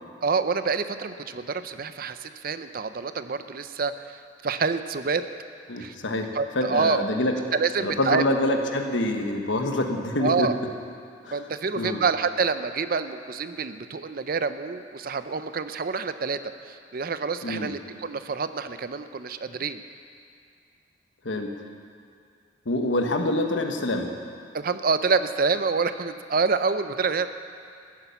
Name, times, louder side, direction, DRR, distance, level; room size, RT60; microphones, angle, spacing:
voice 1, 0.2-5.3 5.7-5.9 6.3-7.0 7.5-8.2 10.2-10.6 11.3-19.8 24.5-27.3, right 5 dB, 50° right, 11 dB, 0.5 m, -27 dB
voice 2, 5.7-6.3 6.5-7.3 7.8-10.5 11.2-11.4 11.8-12.0 17.4-17.7 21.2-21.5 22.7-24.1, left 1 dB, 80° left, 4 dB, 1.2 m, -26 dB
14.5 x 8.6 x 6.9 m, 2.4 s
head